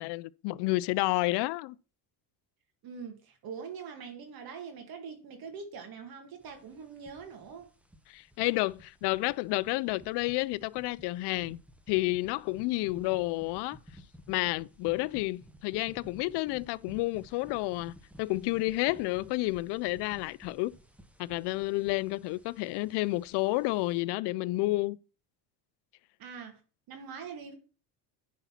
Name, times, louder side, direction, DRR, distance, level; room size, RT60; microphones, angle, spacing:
voice 1, 0.0-1.8 8.1-11.6 11.9-13.8 14.3-20.7 21.2-25.0, left 20 dB, 60° left, 0.5 m, -30 dB
voice 2, 2.8-7.7 26.2-26.6 26.9-27.5, right 6 dB, 50° right, 1.9 m, -43 dB
sound 1, 6.4-24.0, equal, 5° right, 0.8 m, -55 dB
10.0 x 4.2 x 5.7 m
cardioid pair, 135°, 46 cm